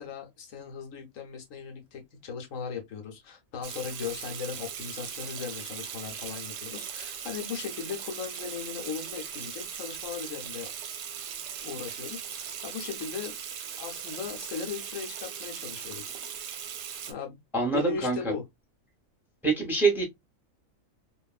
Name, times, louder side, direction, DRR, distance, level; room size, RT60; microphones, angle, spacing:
voice 1, 0.0-10.7 11.6-13.4 13.8-16.2 17.1-17.4 17.7-18.4, left 6 dB, 70° left, 1.1 m, -38 dB
Water tap faucet / Sink (filling or washing), 3.6-17.1, right 8 dB, 65° right, 0.8 m, -39 dB
voice 2, 17.5-18.2 19.4-20.0, right 3 dB, ahead, 0.7 m, -25 dB
2.9 x 2.3 x 2.3 m
omnidirectional pair, 1.4 m